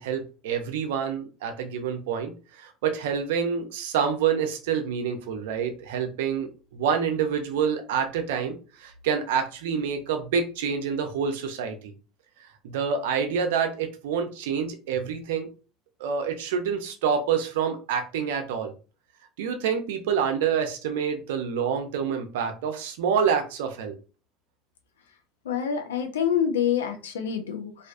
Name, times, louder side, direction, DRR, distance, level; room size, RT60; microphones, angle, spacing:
voice 1, 0.0-11.9 12.6-15.5 16.0-18.7 19.4-23.9, right 7 dB, 75° right, 6 dB, 0.4 m, -27 dB
voice 2, 25.5-27.9, left 8 dB, 85° left, 6 dB, 0.4 m, -27 dB
2.4 x 2.2 x 2.4 m, 0.35 s
hypercardioid pair, 75°, 0 cm